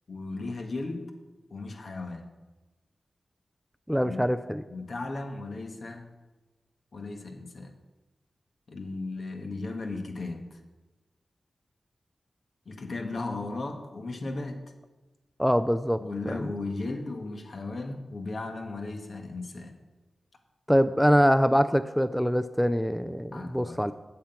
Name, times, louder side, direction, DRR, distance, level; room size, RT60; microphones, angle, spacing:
voice 1, 0.1-1.1 1.5-2.3 4.0-4.2 4.7-6.1 6.9-7.7 8.7-10.6 12.7-14.6 16.0-19.8 23.3-23.8, left 3 dB, 65° left, 4 dB, 1.3 m, -36 dB
voice 2, 3.9-4.6 15.4-16.5 20.7-23.9, equal, ahead, 11 dB, 0.4 m, -24 dB
8.3 x 5.9 x 8.1 m, 1.1 s
wide cardioid pair, 75°, 0 cm